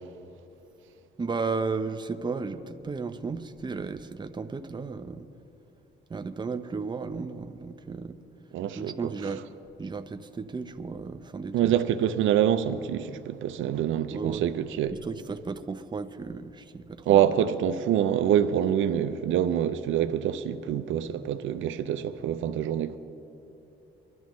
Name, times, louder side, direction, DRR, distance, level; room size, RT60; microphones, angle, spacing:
voice 1, 1.2-5.3 6.1-8.2 8.8-9.4 9.8-11.7 14.1-14.4 15.0-17.3, right 4 dB, 20° right, 0.7 m, -34 dB
voice 2, 8.5-9.1 11.5-14.9 17.1-23.0, right 10 dB, 75° right, 0.6 m, -25 dB
24.0 x 12.0 x 3.1 m
cardioid pair, 90°, 20 cm